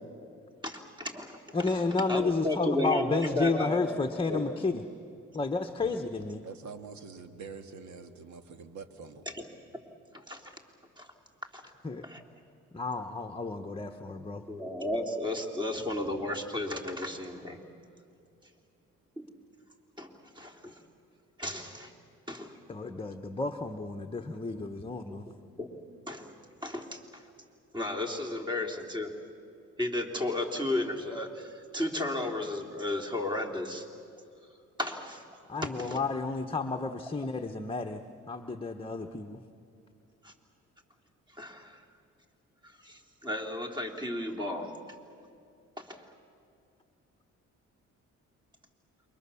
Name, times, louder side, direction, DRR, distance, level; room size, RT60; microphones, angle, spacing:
voice 1, 0.6-1.8 2.1-4.4 9.3-9.8 10.1-10.5 11.0-11.1 11.4-11.6 12.0-12.2 14.5-17.6 19.2-19.3 20.0-20.8 21.4-21.9 22.3-22.6 22.9-23.0 24.8-25.2 25.6-25.8 26.1-26.3 26.6-27.3 27.7-29.1 29.8-33.9 34.8-35.2 35.6-36.0 40.2-40.3 41.3-41.8 42.6-44.8 45.8-46.1, left 1 dB, 15° right, 3 dB, 3.3 m, -34 dB
voice 2, 1.5-4.8 5.3-6.4 11.8-12.0 12.7-14.4 22.7-25.2 35.5-39.4, left 3 dB, 20° left, 5 dB, 1.1 m, -31 dB
voice 3, 6.4-9.3, right 5 dB, 70° right, 8 dB, 1.9 m, -45 dB
28.5 x 24.0 x 7.1 m, 2.6 s
cardioid pair, 90°, 30 cm